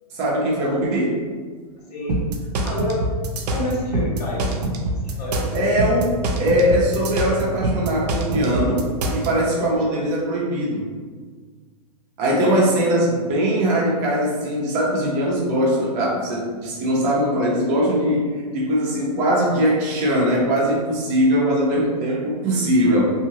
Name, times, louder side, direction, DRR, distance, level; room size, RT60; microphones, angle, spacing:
voice 1, 0.1-1.2 5.5-8.9 9.1-10.9 12.2-23.1, equal, 35° right, -4 dB, 0.9 m, -21 dB
voice 2, 1.9-2.2 2.6-3.1 3.5-4.6 5.2-5.6 12.3-12.4, left 2 dB, 80° left, -5 dB, 1.2 m, -28 dB
sound 1, 2.1-9.3, right 2 dB, 85° right, 0.6 m, -24 dB
2.8 x 2.7 x 2.9 m, 1.5 s
hypercardioid pair, 140°, 20 cm